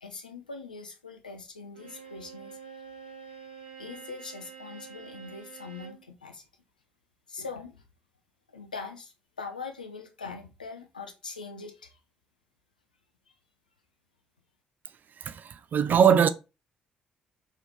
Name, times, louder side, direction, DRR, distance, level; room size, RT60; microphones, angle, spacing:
voice 1, 0.0-2.6 3.8-6.5 7.3-7.8 8.5-12.0, left 4 dB, 85° left, 0.4 m, -42 dB
Bowed string instrument, 1.7-6.1, right 7 dB, 80° right, 0.6 m, -47 dB
voice 2, 15.2-16.3, right 8 dB, 45° right, 0.4 m, -21 dB
3.0 x 2.7 x 3.3 m
figure-of-eight pair, 40°, 4 cm